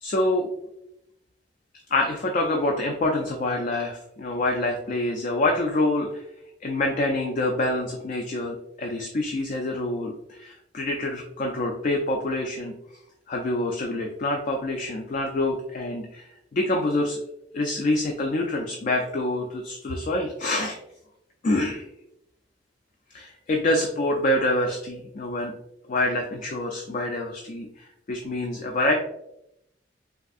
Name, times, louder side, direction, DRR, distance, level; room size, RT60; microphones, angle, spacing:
voice 1, 0.0-0.5 1.9-6.2 6.6-12.7 13.3-17.2 17.5-20.8 21.4-21.9 23.1-25.5 25.9-29.0, left 1 dB, 45° left, 2 dB, 0.3 m, -26 dB
3.5 x 2.6 x 2.3 m, 0.81 s
head